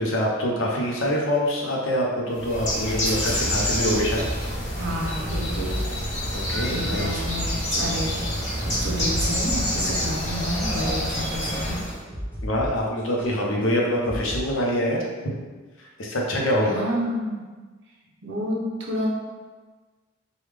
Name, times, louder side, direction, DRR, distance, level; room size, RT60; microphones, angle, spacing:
voice 1, 0.0-4.3 6.5-7.2 12.4-15.0 15.3-15.4 16.0-16.8, equal, 65° left, -2 dB, 0.6 m, -25 dB
Bird, 2.3-12.0, equal, 35° left, 0.9 m, -27 dB
voice 2, 4.8-5.8 6.7-8.2 8.6-11.9 16.6-17.5 18.2-19.1, equal, 60° right, -3 dB, 0.7 m, -30 dB
sound 1, 5.2-12.7 13.0-13.3 14.0-14.4, equal, 10° left, 0.9 m, -35 dB
3.4 x 2.2 x 3.3 m, 1.4 s
head